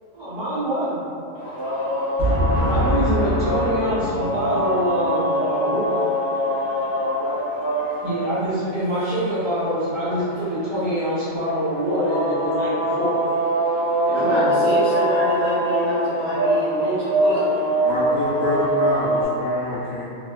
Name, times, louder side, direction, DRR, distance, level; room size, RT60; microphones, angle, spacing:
voice 1, 0.1-1.0 2.7-6.1 8.0-13.2 14.0-15.0, equal, 40° right, -14 dB, 0.7 m, -25 dB
voice 2, 1.3-2.1 2.6-2.9 14.1-17.4, equal, 60° right, -10 dB, 1.1 m, -27 dB
sound 1, 1.4-19.3, equal, 10° left, 0.6 m, -24 dB
voice 3, 2.2-4.1 17.8-20.1, right 1 dB, 45° left, -16 dB, 0.8 m, -24 dB
3.1 x 2.0 x 2.2 m, 2.5 s
omnidirectional pair, 1.5 m